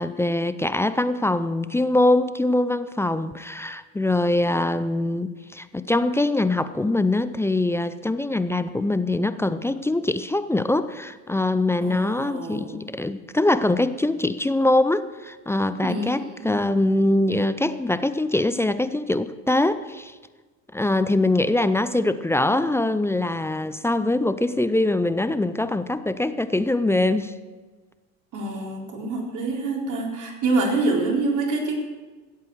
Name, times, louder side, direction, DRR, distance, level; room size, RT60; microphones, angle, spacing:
voice 1, 0.0-20.2 20.7-27.3, left 2 dB, 5° left, 12 dB, 0.5 m, -23 dB
voice 2, 11.8-12.8 15.8-16.6 28.3-31.7, right 3 dB, 45° right, 0 dB, 4.2 m, -26 dB
16.5 x 8.3 x 6.4 m, 1.3 s
hypercardioid pair, 90°, 41 cm